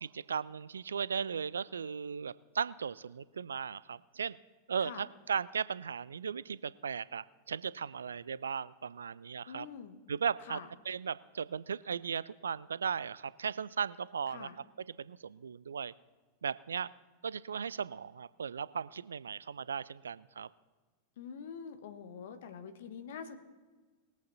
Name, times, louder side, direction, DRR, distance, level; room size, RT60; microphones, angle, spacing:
voice 1, 0.0-4.4 4.7-9.7 10.1-10.6 10.9-14.5 15.0-15.9 16.4-16.9 17.2-20.5, right 6 dB, 70° right, 19 dB, 0.3 m, -37 dB
voice 2, 9.5-10.0 10.5-10.7 14.3-14.5 21.2-23.4, left 7 dB, 55° left, 9 dB, 1.3 m, -45 dB
21.0 x 8.3 x 4.1 m, 1.3 s
figure-of-eight pair, 90°, 0 cm